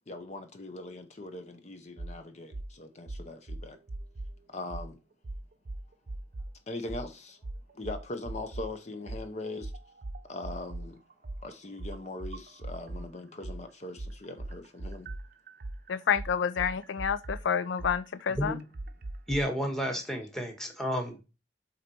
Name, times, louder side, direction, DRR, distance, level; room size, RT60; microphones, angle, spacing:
voice 1, 0.1-3.8 4.5-5.0 6.7-7.4 7.7-9.7 10.2-11.0 11.4-15.1, left 2 dB, 40° left, 0.7 m, -41 dB
sound 1, 2.0-2.1 2.5-2.7 3.1-4.3 4.7-4.9 5.2-6.5 6.9-7.1 7.4-8.7 9.1-13.1 13.4-19.4, right 2 dB, 50° right, 0.6 m, -39 dB
voice 2, 15.9-18.5, left 7 dB, 85° left, 0.4 m, -29 dB
voice 3, 19.3-21.2, equal, 5° left, 1.4 m, -31 dB
7.8 x 4.0 x 4.5 m
head